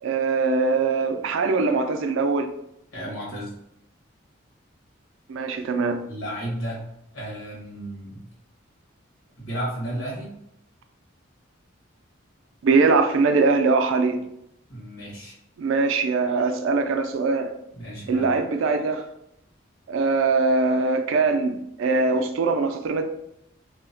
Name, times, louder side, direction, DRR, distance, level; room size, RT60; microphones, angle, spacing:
voice 1, 0.0-2.5 5.3-6.0 12.6-14.2 15.6-17.5 18.1-19.0 19.9-23.0, right 4 dB, 75° right, 7 dB, 0.3 m, -22 dB
voice 2, 2.9-3.5 6.1-6.8 7.1-8.2 9.4-10.3 14.7-15.4 17.7-18.3, right 1 dB, 85° left, -5 dB, 1.3 m, -33 dB
2.8 x 2.0 x 2.6 m, 0.78 s
head